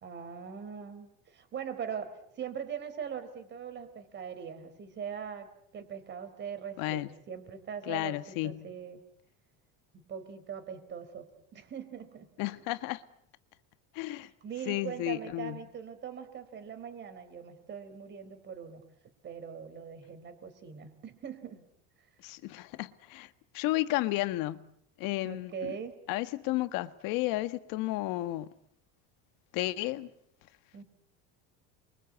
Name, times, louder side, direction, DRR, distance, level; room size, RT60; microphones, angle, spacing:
voice 1, 0.0-9.0 9.9-12.3 14.4-18.8 19.2-21.7 25.2-26.0 30.7-30.8, right 7 dB, 30° right, 4.0 m, -41 dB
voice 2, 6.8-7.1 7.9-8.7 12.4-13.0 13.9-14.3 14.7-15.6 22.2-24.7 25.0-25.7 26.1-28.5 29.5-30.1, left 17 dB, 65° left, 1.6 m, -33 dB
29.0 x 24.0 x 8.4 m
cardioid pair, 170°, 36 cm